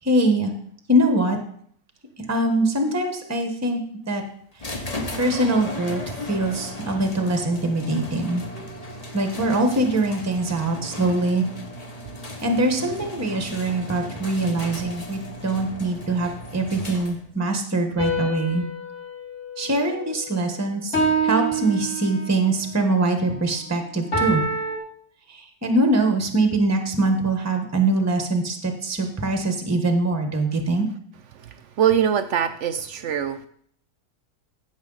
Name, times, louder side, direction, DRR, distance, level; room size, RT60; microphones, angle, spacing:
voice 1, 0.0-0.5 0.9-1.4 2.3-3.8 4.1-4.2 5.2-6.0 6.3-8.4 9.1-11.4 12.4-18.6 19.6-21.0 21.2-24.4 25.6-30.9, right 2 dB, 10° right, 4 dB, 1.0 m, -23 dB
sound 1, 4.6-17.4, left 1 dB, 30° left, 1.0 m, -36 dB
sound 2, 18.0-20.4 20.9-22.5 24.1-24.8, right 2 dB, 45° left, 3.5 m, -26 dB
voice 2, 31.8-33.5, right 9 dB, 70° right, 10 dB, 0.7 m, -22 dB
14.5 x 6.3 x 4.0 m, 0.64 s
omnidirectional pair, 1.8 m